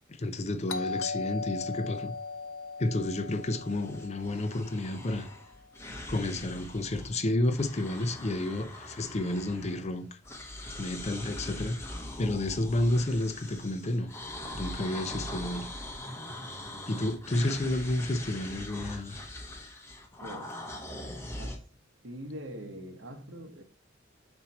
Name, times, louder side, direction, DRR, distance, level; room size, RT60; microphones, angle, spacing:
voice 1, 0.1-2.1 2.8-5.3 6.1-10.2 10.8-11.8 12.2-14.1 14.5-15.7 16.9-19.2, left 1 dB, 35° left, 0.5 m, -31 dB
Doorbell, 0.7-5.3, left 4 dB, 90° left, 0.6 m, -38 dB
sound 1, 3.4-7.2 7.4-10.0 10.2-21.6, left 1 dB, 15° left, 0.9 m, -42 dB
voice 2, 20.2-20.6 21.4-21.6 22.0-23.6, equal, 70° right, 1.1 m, -43 dB
5.7 x 4.4 x 4.1 m
head